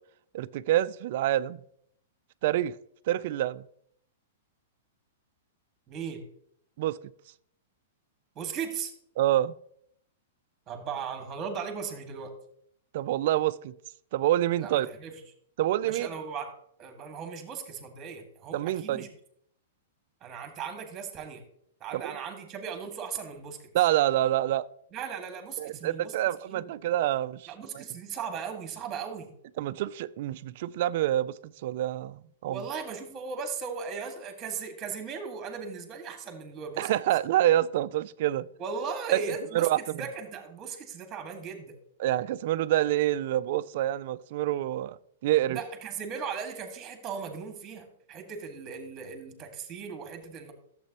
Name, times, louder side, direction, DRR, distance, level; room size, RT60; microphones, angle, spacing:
voice 1, 0.3-1.6 2.4-2.8 3.1-3.6 6.8-7.0 9.2-9.5 12.9-13.7 14.1-14.9 15.6-16.1 18.5-19.0 22.0-22.1 23.7-24.6 25.6-27.8 29.6-32.6 36.8-38.5 39.1-39.2 39.5-40.0 42.0-45.6, right 13 dB, 55° right, 0.3 m, -27 dB
voice 2, 5.9-6.2 8.3-8.9 10.7-12.3 14.6-15.1 15.8-16.5 16.8-19.1 20.2-21.4 21.8-23.7 24.9-26.1 26.5-26.9 27.5-29.3 32.5-36.9 38.6-41.8 45.5-50.5, right 6 dB, 20° right, 1.7 m, -37 dB
12.0 x 7.5 x 2.9 m
hypercardioid pair, 150°, 0 cm